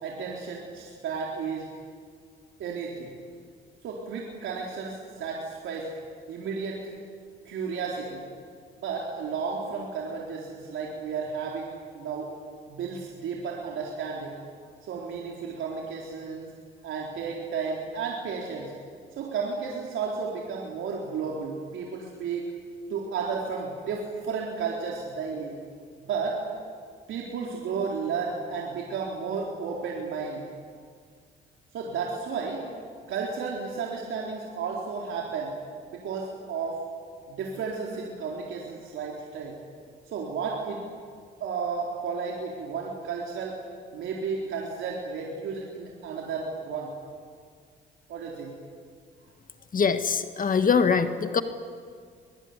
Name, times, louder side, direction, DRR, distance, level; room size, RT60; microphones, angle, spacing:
voice 1, 0.0-1.7 2.6-3.1 3.8-5.9 6.3-6.8 7.4-8.2 8.8-11.7 11.9-12.3 12.7-14.3 14.9-16.5 16.8-18.7 19.2-22.5 22.9-25.6 26.0-26.4 27.1-30.4 31.7-32.6 33.1-35.5 35.9-36.8 37.3-39.5 40.1-40.8 41.4-43.6 43.9-46.9 48.1-48.5, right 5 dB, 80° right, -2 dB, 4.1 m, -33 dB
voice 2, 49.7-51.4, left 6 dB, 45° left, 9 dB, 1.6 m, -23 dB
23.0 x 22.5 x 9.8 m, 2.1 s
cardioid pair, 90°, 20 cm